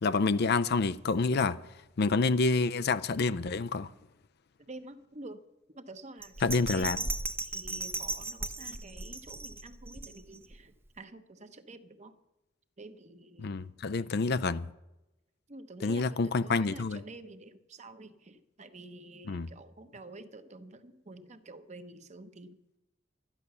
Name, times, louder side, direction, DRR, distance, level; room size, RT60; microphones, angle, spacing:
voice 1, 0.0-1.6 2.0-3.9 6.4-7.0 13.4-14.7 15.8-17.0 19.3-19.5, left 4 dB, 55° left, 0.5 m, -28 dB
voice 2, 4.6-5.4 5.7-7.2 7.4-12.1 12.8-13.5 15.5-22.6, right 2 dB, 35° right, 0.9 m, -49 dB
Bell, 6.2-10.6 11.0-11.1, right 2 dB, 10° right, 0.6 m, -37 dB
12.0 x 10.5 x 6.8 m
head